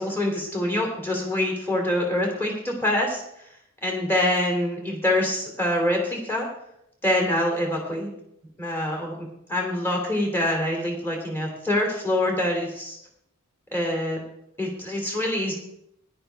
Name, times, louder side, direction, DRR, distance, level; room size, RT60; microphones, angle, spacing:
voice 1, 0.0-3.5 3.8-6.5 7.0-8.1 8.6-13.0 13.7-14.2 14.6-15.5, left 1 dB, 10° left, 1 dB, 2.7 m, -25 dB
15.5 x 11.0 x 3.4 m, 0.77 s
head